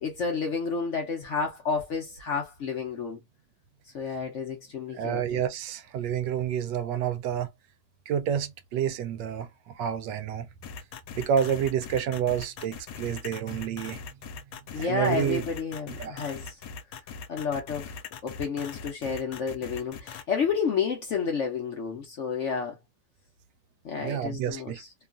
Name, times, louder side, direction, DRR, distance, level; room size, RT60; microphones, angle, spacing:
voice 1, 0.0-3.2 3.9-5.4 14.7-16.6 17.3-22.8 23.8-24.9, left 5 dB, 60° left, 0.8 m, -31 dB
voice 2, 5.0-7.5 8.1-9.5 9.8-10.5 11.1-14.0 14.8-15.4 16.0-16.2 24.0-24.8, right 9 dB, 85° right, 1.2 m, -29 dB
sound 1, 10.6-20.2, left 6 dB, 90° left, 1.2 m, -41 dB
3.0 x 2.4 x 2.4 m
omnidirectional pair, 1.9 m